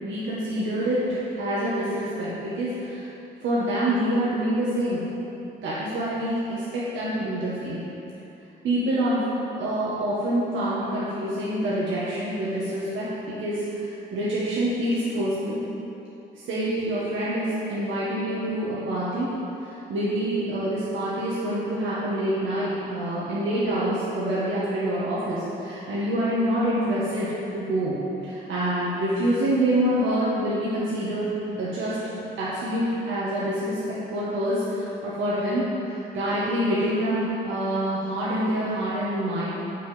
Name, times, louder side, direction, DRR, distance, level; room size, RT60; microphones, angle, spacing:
voice 1, 0.0-3.1 3.4-5.0 5.6-7.8 8.6-9.3 9.6-15.6 16.5-19.3 19.6-39.4, right 1 dB, 75° right, -9 dB, 1.8 m, -26 dB
7.4 x 6.6 x 5.2 m, 2.9 s
cardioid pair, 90°, 20 cm